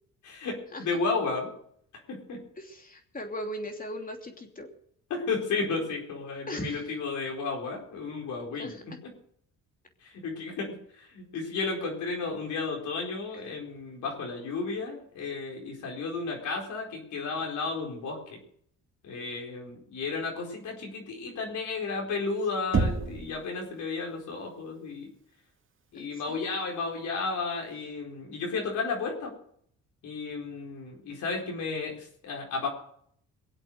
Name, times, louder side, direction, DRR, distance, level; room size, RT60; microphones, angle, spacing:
voice 1, 0.2-1.5 2.1-2.4 5.1-8.7 10.0-18.4 19.0-25.1 25.9-29.3 30.0-32.7, left 4 dB, 75° left, -1 dB, 4.4 m, -33 dB
voice 2, 2.6-4.7 6.5-6.9 8.6-8.8 13.4-13.5 25.9-26.4, equal, 30° left, 3 dB, 2.9 m, -38 dB
Knock, 22.7-23.4, right 4 dB, 40° right, 2.3 m, -26 dB
22.5 x 8.1 x 6.4 m, 0.67 s
cardioid pair, 90°, 30 cm